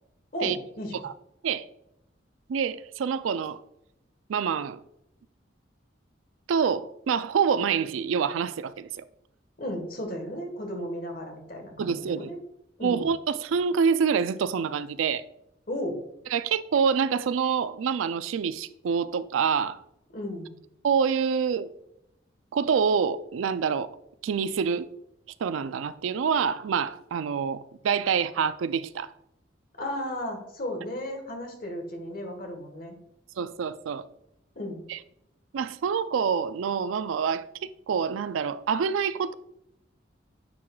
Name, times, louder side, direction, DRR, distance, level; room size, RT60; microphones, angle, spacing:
voice 1, 0.3-1.0 9.6-12.4 12.8-13.1 15.7-16.0 20.1-20.5 29.8-33.0 34.5-34.8, equal, 45° left, 1.3 m, -34 dB
voice 2, 2.5-3.6 4.3-4.8 6.5-9.0 11.8-12.3 12.8-15.2 16.3-19.8 20.8-21.7 22.5-23.9 24.2-24.9 25.4-29.1 33.4-34.1 34.9-35.0 35.5-39.3, right 6 dB, 90° right, 0.4 m, -26 dB
9.4 x 4.7 x 2.3 m
head